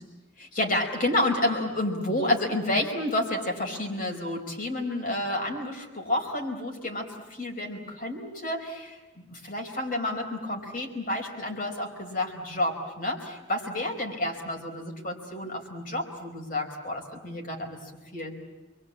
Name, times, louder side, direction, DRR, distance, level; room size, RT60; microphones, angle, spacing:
voice 1, 0.4-17.8 18.1-18.3, left 1 dB, 45° left, 2 dB, 4.9 m, -30 dB
28.5 x 23.0 x 8.5 m, 1.2 s
head